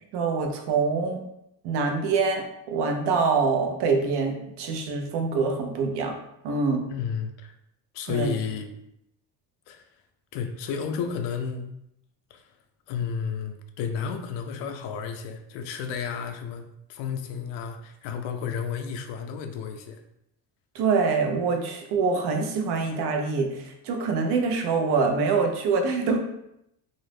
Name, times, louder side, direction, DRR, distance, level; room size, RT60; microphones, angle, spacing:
voice 1, 0.1-1.2 1.6-6.2 6.4-6.8 8.1-8.4 20.7-26.2, right 4 dB, 70° right, 3 dB, 0.6 m, -25 dB
voice 2, 6.9-7.5 7.9-8.7 9.7-9.8 10.3-11.8 12.3-12.4 12.9-20.0, left 6 dB, 85° left, 6 dB, 0.5 m, -32 dB
2.5 x 2.0 x 3.2 m, 0.80 s
cardioid pair, 160°, 42 cm